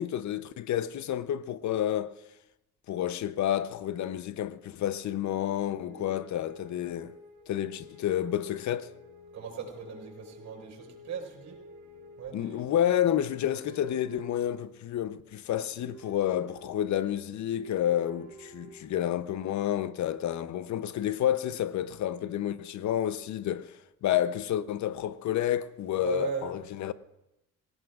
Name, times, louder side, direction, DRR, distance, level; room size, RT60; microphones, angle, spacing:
voice 1, 0.0-2.1 2.9-7.1 7.5-8.9 12.3-23.8 24.0-26.9, left 11 dB, 70° left, 0.8 m, -30 dB
sound 1, 5.0-19.3, right 1 dB, 80° right, 3.4 m, -51 dB
voice 2, 9.3-11.6 12.2-12.7 26.0-26.5, right 7 dB, 65° right, 5.6 m, -38 dB
25.0 x 17.0 x 2.5 m
cardioid pair, 90°, 30 cm